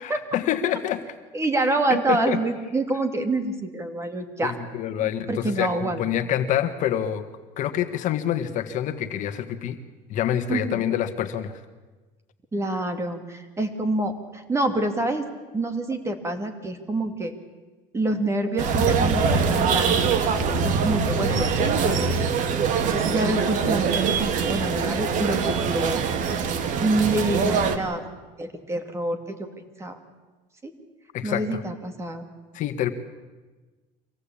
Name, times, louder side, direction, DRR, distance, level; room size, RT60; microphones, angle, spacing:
voice 1, 0.0-1.0 1.9-2.4 4.4-7.2 7.6-9.8 10.1-11.6 31.1-31.6 32.5-32.9, left 10 dB, 50° left, 8 dB, 1.6 m, -26 dB
voice 2, 1.3-4.6 5.0-6.0 10.5-10.8 12.5-15.3 15.5-17.3 17.9-20.1 20.6-22.0 22.9-26.0 26.8-28.0 28.4-30.0 30.6-30.7 31.2-32.2, right 2 dB, 15° right, 6 dB, 2.5 m, -27 dB
sound 1, 18.6-27.8, right 5 dB, 50° right, 2.2 m, -23 dB
25.0 x 17.0 x 8.6 m, 1.3 s
cardioid pair, 130°, 16 cm